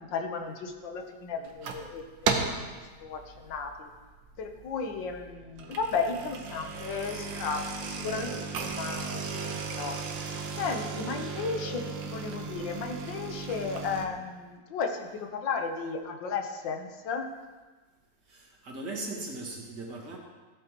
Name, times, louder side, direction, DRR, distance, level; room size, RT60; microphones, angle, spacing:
voice 1, 0.0-2.6 3.0-3.9 4.4-9.9 10.6-17.3, left 5 dB, 80° left, 4 dB, 1.7 m, -34 dB
sound 1, 1.5-1.9 2.3-2.7 3.2-3.5 4.0-4.1 4.4-4.5 5.4-14.1, right 5 dB, 85° right, 1.6 m, -35 dB
voice 2, 18.3-20.2, right 2 dB, 65° right, -1 dB, 2.3 m, -38 dB
15.0 x 8.5 x 3.0 m, 1.3 s
omnidirectional pair, 2.0 m